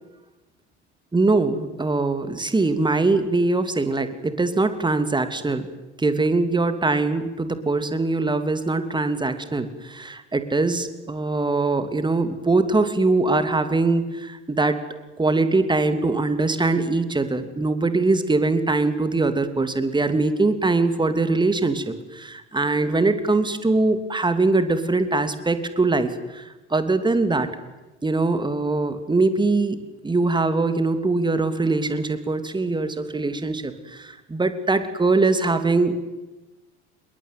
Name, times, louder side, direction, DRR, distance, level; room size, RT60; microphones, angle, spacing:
voice 1, 1.1-5.7 6.0-14.8 15.2-27.5 28.0-35.9, right 3 dB, 15° right, 10 dB, 2.9 m, -22 dB
26.5 x 21.5 x 9.5 m, 1.1 s
figure-of-eight pair, 65°, 35 cm